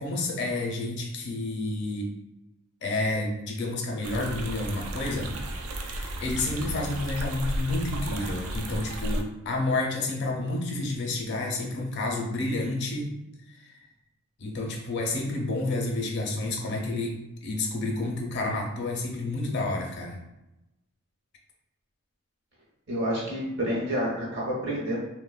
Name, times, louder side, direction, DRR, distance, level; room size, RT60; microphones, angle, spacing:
voice 1, 0.0-2.1 2.8-5.3 5.6-13.1 13.5-13.9 14.4-20.2, left 2 dB, 55° left, 1 dB, 0.5 m, -30 dB
sound 1, 4.0-9.2, right 1 dB, 90° right, 0.4 m, -33 dB
voice 2, 22.9-25.0, equal, 55° right, -5 dB, 1.0 m, -29 dB
3.1 x 2.1 x 2.3 m, 0.94 s
head